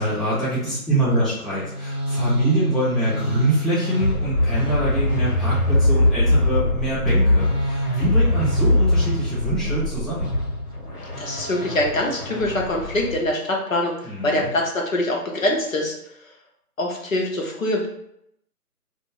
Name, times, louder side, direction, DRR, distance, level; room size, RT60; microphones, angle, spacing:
voice 1, 0.0-10.3 14.0-14.5, right 1 dB, ahead, -12 dB, 0.5 m, -25 dB
sound 1, 1.4-13.3, left 1 dB, 70° left, 1.3 m, -22 dB
voice 2, 11.2-16.3 16.8-17.9, left 1 dB, 55° left, 0 dB, 0.8 m, -24 dB
2.5 x 2.4 x 2.9 m, 0.76 s
hypercardioid pair, 175°, 47 cm